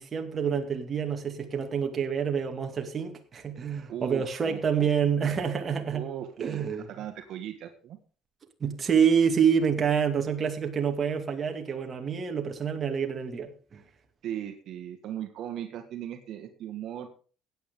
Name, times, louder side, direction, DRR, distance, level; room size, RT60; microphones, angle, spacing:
voice 1, 0.0-6.0 6.4-6.9 8.6-13.8, right 7 dB, 30° right, 2.2 m, -27 dB
voice 2, 3.9-4.9 5.9-8.0 14.2-17.1, right 10 dB, 60° right, 1.7 m, -38 dB
16.5 x 9.2 x 3.8 m
cardioid pair, 130°, 0 cm